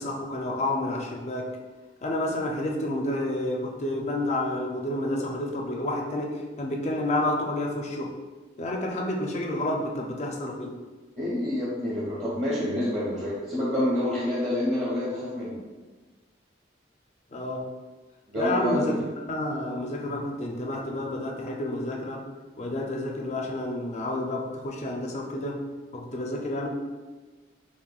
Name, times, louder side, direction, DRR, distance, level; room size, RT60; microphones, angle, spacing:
voice 1, 0.0-1.5 2.0-8.2 8.6-10.8 17.3-17.7 18.4-18.9 19.3-22.2 22.6-25.6 25.9-26.7, left 1 dB, 40° left, 1 dB, 0.4 m, -30 dB
voice 2, 11.2-15.6 18.3-19.0, left 1 dB, 40° right, -9 dB, 1.2 m, -27 dB
5.7 x 2.2 x 2.3 m, 1.3 s
head